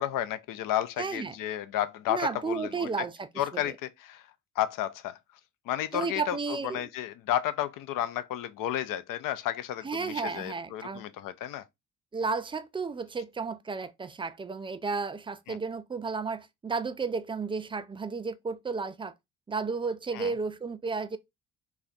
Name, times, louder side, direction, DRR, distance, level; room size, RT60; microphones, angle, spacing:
voice 1, 0.0-2.9 3.4-4.2 4.6-5.2 5.7-6.4 6.7-11.6 15.5-15.6 20.1-20.3, left 12 dB, 50° left, 0.6 m, -32 dB
voice 2, 1.0-1.4 2.1-3.3 3.5-3.7 5.9-6.9 9.8-11.0 12.1-19.1 19.5-21.2, right 4 dB, 15° right, 0.4 m, -33 dB
3.2 x 2.4 x 3.8 m
figure-of-eight pair, 50°, 42 cm